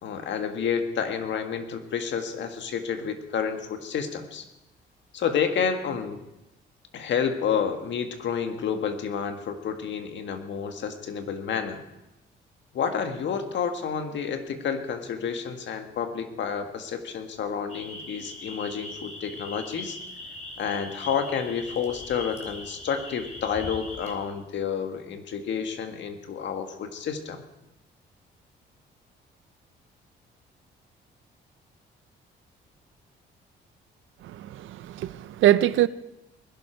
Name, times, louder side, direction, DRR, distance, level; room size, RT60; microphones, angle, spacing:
voice 1, 0.0-4.5 5.1-6.2 6.9-11.8 12.7-20.0 20.6-27.4, left 7 dB, 65° left, 1.7 m, -30 dB
sound 1, 17.7-24.1, left 2 dB, 35° left, 3.6 m, -40 dB
voice 2, 34.2-35.9, right 13 dB, 80° right, 0.6 m, -23 dB
20.0 x 11.5 x 4.5 m
cardioid pair, 90°, 20 cm